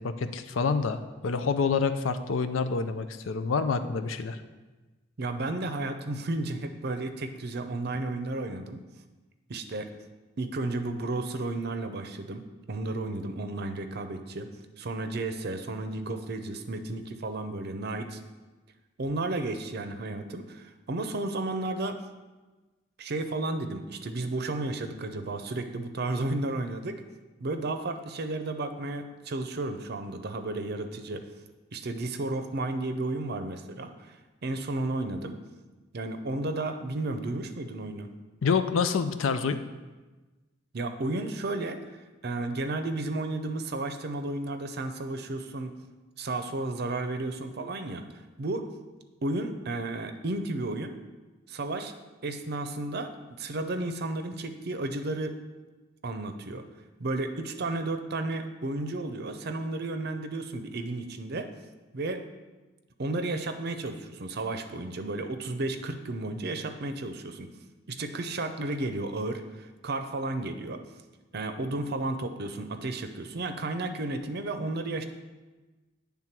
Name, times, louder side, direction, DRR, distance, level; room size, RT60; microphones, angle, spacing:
voice 1, 0.0-4.4 38.4-39.6, left 5 dB, 75° left, 9 dB, 0.5 m, -27 dB
voice 2, 5.2-8.8 9.5-9.9 10.4-14.5 14.8-18.2 19.0-22.0 23.0-27.0 27.4-31.3 31.7-34.2 34.4-35.4 35.9-38.1 40.7-41.8 42.2-45.7 46.2-48.0 48.4-48.7 49.2-51.0 51.5-51.9 52.2-53.1 53.4-55.4 56.0-56.6 57.0-61.5 61.9-62.3 63.0-67.5 67.9-70.8 71.3-75.1, right 2 dB, 55° right, 8 dB, 0.6 m, -33 dB
9.1 x 3.6 x 5.8 m, 1.2 s
head